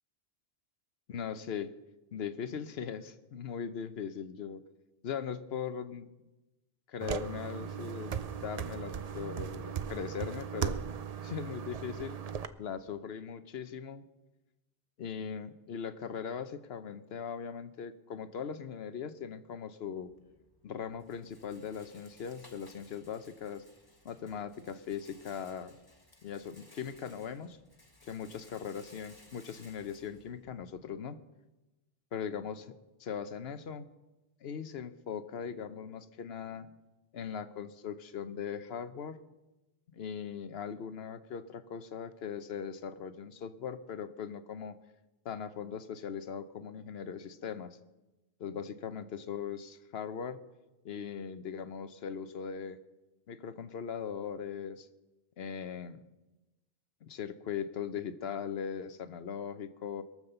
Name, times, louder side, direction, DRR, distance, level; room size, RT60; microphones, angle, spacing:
voice 1, 1.1-1.7 2.1-4.6 5.0-6.1 6.9-10.8 11.2-12.2 12.6-14.0 15.0-20.1 20.6-23.6 24.0-25.8 26.2-27.6 28.0-31.2 32.1-33.9 34.4-36.7 37.1-39.2 39.9-44.8 45.2-47.8 48.4-50.4 50.8-52.8 53.3-54.9 55.4-56.0 57.0-60.0, left 7 dB, 85° left, 12 dB, 1.1 m, -40 dB
sound 1, 7.0-12.5, right 8 dB, 45° right, 0.6 m, -37 dB
Rattle, 19.9-31.0, left 2 dB, 25° left, 1.2 m, -61 dB
22.0 x 7.4 x 6.7 m, 1.1 s
omnidirectional pair, 1.0 m